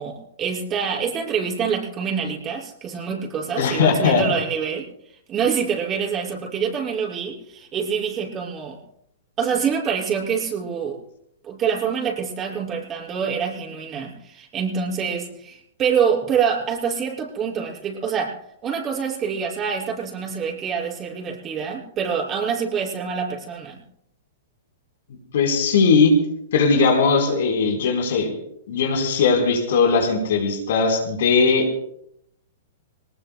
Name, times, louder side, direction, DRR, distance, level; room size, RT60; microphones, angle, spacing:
voice 1, 0.0-4.9 5.3-8.8 9.4-11.0 11.4-23.8, right 6 dB, 30° right, -2 dB, 6.2 m, -26 dB
voice 2, 3.6-4.2 25.3-26.1 26.5-28.3 28.7-31.7, left 4 dB, 65° left, 2 dB, 4.3 m, -19 dB
26.0 x 19.5 x 2.3 m, 0.75 s
hypercardioid pair, 110°, 0 cm